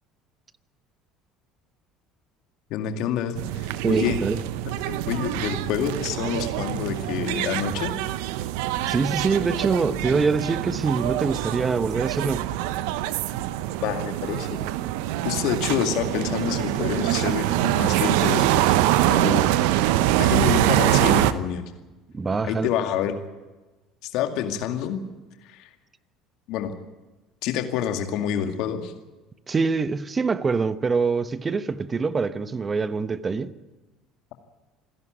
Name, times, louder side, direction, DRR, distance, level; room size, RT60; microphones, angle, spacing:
voice 1, 2.7-4.2 4.7-7.9 13.8-14.7 15.2-18.7 19.1-19.9 20.2-21.6 22.4-23.1 24.0-25.0 25.4-25.7 26.5-26.7 27.4-28.9, left 9 dB, 60° left, 2.1 m, -28 dB
sound 1, 3.4-21.3, right 14 dB, 70° right, 0.8 m, -24 dB
voice 2, 3.8-4.4 8.9-12.5 22.1-22.7 29.5-33.5, right 4 dB, 30° right, 1.1 m, -24 dB
28.0 x 11.0 x 9.2 m
hypercardioid pair, 65°, 0 cm